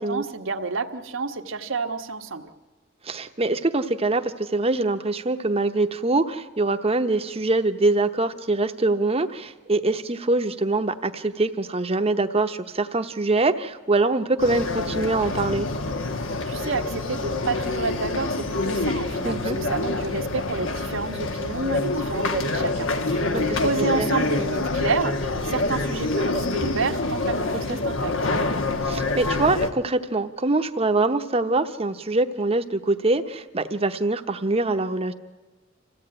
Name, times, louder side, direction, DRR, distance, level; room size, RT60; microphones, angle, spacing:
voice 1, 0.0-2.5 16.4-28.3, right 4 dB, 80° right, 5 dB, 1.4 m, -30 dB
voice 2, 3.0-15.7 19.2-19.6 23.3-23.4 23.8-24.1 27.5-27.8 28.8-35.1, right 2 dB, 30° right, 8 dB, 0.9 m, -24 dB
sound 1, 14.4-29.7, left 2 dB, 75° left, 1.2 m, -26 dB
26.0 x 15.5 x 8.9 m, 1.3 s
head